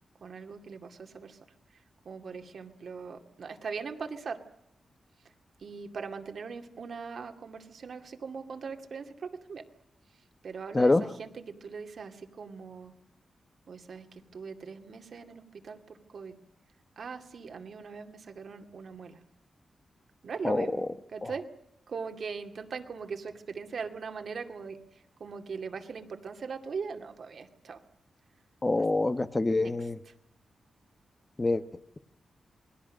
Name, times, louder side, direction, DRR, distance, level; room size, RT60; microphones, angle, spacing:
voice 1, 0.2-1.4 1.7-4.5 5.6-9.7 10.4-12.9 13.7-16.4 17.0-19.2 20.2-21.5 21.9-27.8 28.8-28.9 29.5-29.9, right 5 dB, 60° right, 6 dB, 2.3 m, -40 dB
voice 2, 28.6-30.0 31.4-31.6, left 2 dB, 25° left, 10 dB, 1.2 m, -25 dB
28.0 x 20.5 x 6.4 m, 0.79 s
wide cardioid pair, 115°, 0 cm